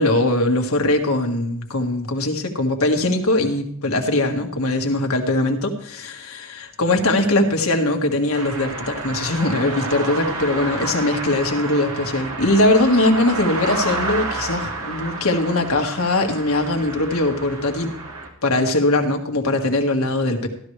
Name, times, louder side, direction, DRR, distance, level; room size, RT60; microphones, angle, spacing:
voice 1, 0.0-17.9 18.4-20.5, left 2 dB, 80° left, 3 dB, 1.8 m, -21 dB
sound 1, 8.3-18.3, right 3 dB, 80° right, 2.3 m, -30 dB
14.5 x 12.5 x 3.3 m, 0.65 s
head